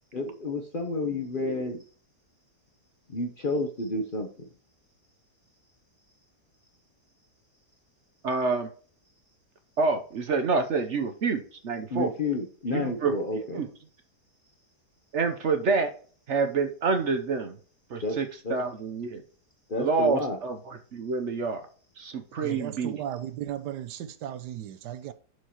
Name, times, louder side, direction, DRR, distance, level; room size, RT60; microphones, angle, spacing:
voice 1, 0.1-1.8 3.1-4.5 11.9-13.6 18.0-18.6 19.7-20.4, left 2 dB, 40° left, 0.8 m, -30 dB
voice 2, 8.2-8.7 9.8-12.1 12.7-13.1 13.5-13.7 15.1-15.9 16.3-17.6 17.9-19.2 19.8-21.6 22.0-23.0, right 4 dB, 55° right, 0.9 m, -27 dB
voice 3, 22.4-25.1, right 11 dB, 80° right, 1.2 m, -36 dB
11.0 x 4.8 x 3.0 m
omnidirectional pair, 1.8 m